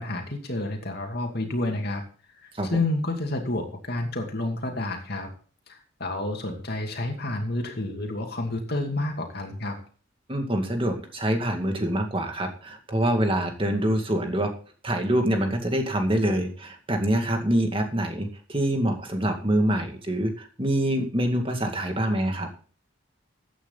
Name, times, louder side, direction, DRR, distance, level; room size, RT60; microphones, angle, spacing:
voice 1, 0.0-2.0 2.4-5.3 5.7-9.8, left 2 dB, 50° left, 4 dB, 2.6 m, -30 dB
voice 2, 10.3-14.5 14.8-22.5, right 1 dB, 25° right, 4 dB, 2.1 m, -25 dB
14.5 x 9.2 x 4.0 m, 0.41 s
head